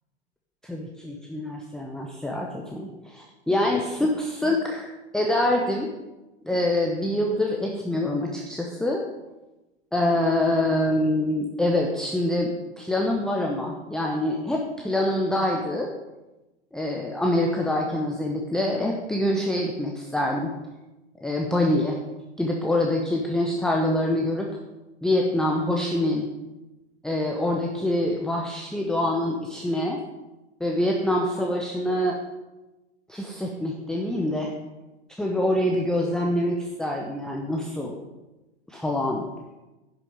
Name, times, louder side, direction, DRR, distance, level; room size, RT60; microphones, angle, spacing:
voice 1, 0.6-5.9 6.4-9.0 9.9-15.9 16.7-20.5 21.2-22.0 22.4-24.5 25.0-26.3 27.0-30.0 30.6-32.2 33.1-34.5 35.2-38.0 38.7-39.3, left 1 dB, ahead, -1 dB, 0.7 m, -25 dB
10.5 x 6.0 x 5.2 m, 1.1 s
figure-of-eight pair, 100°, 33 cm